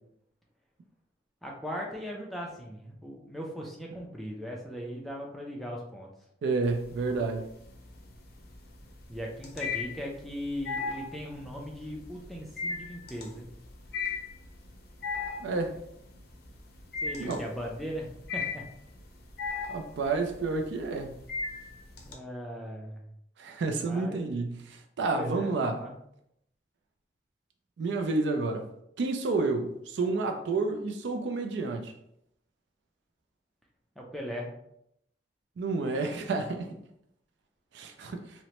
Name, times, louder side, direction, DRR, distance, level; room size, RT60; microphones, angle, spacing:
voice 1, 1.4-6.1 9.1-13.5 17.0-18.6 22.0-23.1 23.8-24.4 25.1-25.9 34.0-34.5, equal, ahead, -2 dB, 0.4 m, -38 dB
voice 2, 6.4-7.5 15.4-15.8 17.2-17.4 19.7-21.2 23.4-25.8 27.8-28.7 29.0-31.9 35.6-36.7 37.7-38.2, right 3 dB, 80° right, 5 dB, 0.3 m, -30 dB
sound 1, 6.6-7.3 7.6-22.1, left 4 dB, 55° left, 0.5 m, -36 dB
2.9 x 2.1 x 2.9 m, 0.76 s
head